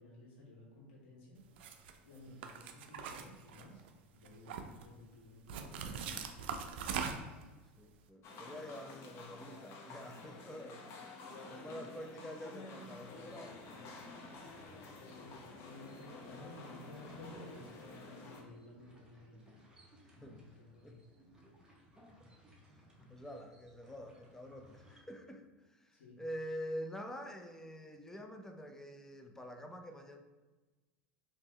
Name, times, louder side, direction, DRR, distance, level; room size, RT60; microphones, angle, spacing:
voice 1, 0.0-1.4 2.0-3.8 4.1-6.8 15.0-19.4 20.2-21.0 25.9-26.1, left 2 dB, 70° left, -5 dB, 1.5 m, -55 dB
sound 1, 1.6-1.9 2.4-3.9 4.2-4.9 5.5-7.4, right 6 dB, 70° right, 0.4 m, -41 dB
voice 2, 7.8-13.9 14.2-14.4 20.0-20.4 20.8-21.0 23.1-30.2, equal, 10° left, 5 dB, 0.4 m, -47 dB
sound 2, 8.2-18.4, left 3 dB, 45° left, 0.7 m, -50 dB
sound 3, 12.8-25.0, equal, 10° right, 0.9 m, -63 dB
3.5 x 2.8 x 3.0 m, 1.2 s
hypercardioid pair, 90°, 6 cm